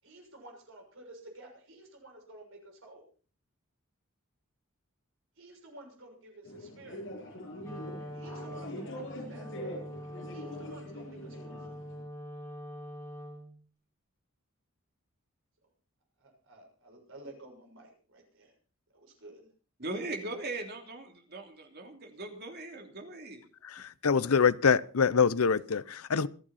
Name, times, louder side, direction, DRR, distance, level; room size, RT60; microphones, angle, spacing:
voice 1, 0.0-3.1 5.3-7.0 8.1-9.6 10.3-11.8 16.2-18.6 18.9-19.5, right 2 dB, 65° right, 6.6 m, -52 dB
sound 1, 6.4-12.0, equal, 60° left, 7.7 m, -43 dB
Wind instrument woodwind instrument, 7.6-13.6, equal, 15° left, 5.9 m, -44 dB
voice 2, 19.8-23.5, right 2 dB, 45° right, 3.0 m, -39 dB
voice 3, 23.6-26.3, left 6 dB, 80° left, 0.6 m, -25 dB
26.5 x 8.9 x 4.2 m
head